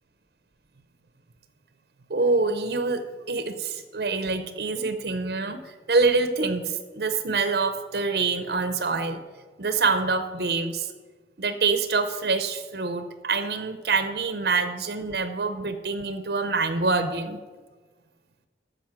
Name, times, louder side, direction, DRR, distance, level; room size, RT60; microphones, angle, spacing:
voice 1, 2.1-3.0 3.3-9.2 9.6-10.9 11.4-17.4, right 4 dB, 65° right, 9 dB, 0.7 m, -26 dB
13.5 x 5.4 x 5.9 m, 1.3 s
head